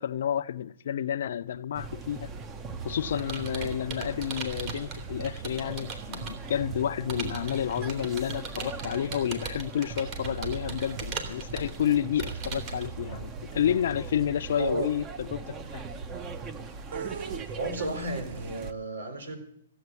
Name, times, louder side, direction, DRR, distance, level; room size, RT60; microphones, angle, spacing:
voice 1, 0.0-2.3 2.8-15.8, left 9 dB, 65° left, 0.7 m, -30 dB
sound 1, 1.7-18.7, right 5 dB, 20° right, 1.1 m, -40 dB
Computer keyboard, 2.4-6.5 7.1-12.9, right 5 dB, 35° right, 3.0 m, -39 dB
sound 2, 12.5-13.0 13.3-13.8 14.2-14.3 14.7-15.1 16.0-16.4 16.9-18.7, right 6 dB, 65° right, 0.7 m, -41 dB
voice 2, 14.6-14.9 17.6-19.4, right 2 dB, 90° right, 4.1 m, -32 dB
16.0 x 8.0 x 8.3 m
hypercardioid pair, 145°, 0 cm